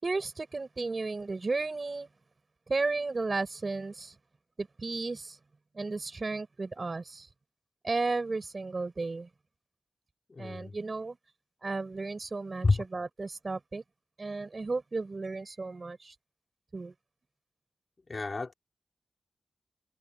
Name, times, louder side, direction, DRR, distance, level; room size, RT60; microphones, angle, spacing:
voice 1, 0.0-2.1 2.7-4.1 4.6-5.4 5.7-7.3 7.8-9.3 10.4-11.2 11.6-12.7 12.9-13.8 14.2-16.1 16.7-16.9, right 3 dB, 40° right, 5.8 m, -34 dB
voice 2, 10.3-10.7 12.6-12.8 18.1-18.5, left 3 dB, 40° left, 5.0 m, -29 dB
wide cardioid pair, 110°, 0 cm